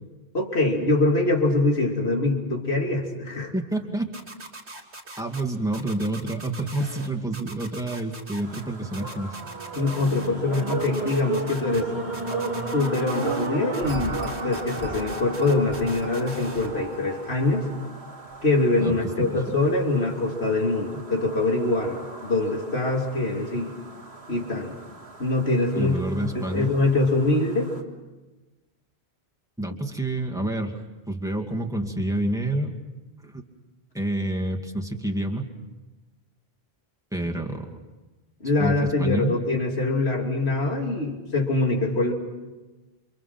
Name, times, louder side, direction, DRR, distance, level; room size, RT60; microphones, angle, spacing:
voice 1, 0.3-3.5 9.7-11.9 12.7-17.7 18.4-23.7 24.3-24.8 25.2-27.7 38.4-42.1, left 2 dB, 70° left, 1 dB, 3.4 m, -24 dB
voice 2, 3.5-4.1 5.2-9.4 18.8-19.5 25.8-26.7 29.6-30.8 31.1-32.8 33.2-33.4 33.9-35.5 37.1-37.8 38.6-39.3, right 1 dB, 5° right, 1 dB, 2.4 m, -28 dB
sound 1, 4.1-5.4 5.7-7.1 7.3-8.6 8.9-10.3 10.5-11.8 12.1-13.5 13.7-16.7, right 2 dB, 90° right, 3.6 m, -41 dB
sound 2, 8.4-27.8, right 4 dB, 70° right, 2.4 m, -39 dB
sound 3, 8.8-19.0 19.6-19.7, right 2 dB, 45° right, 1.8 m, -34 dB
29.5 x 27.0 x 6.0 m, 1.2 s
omnidirectional pair, 1.1 m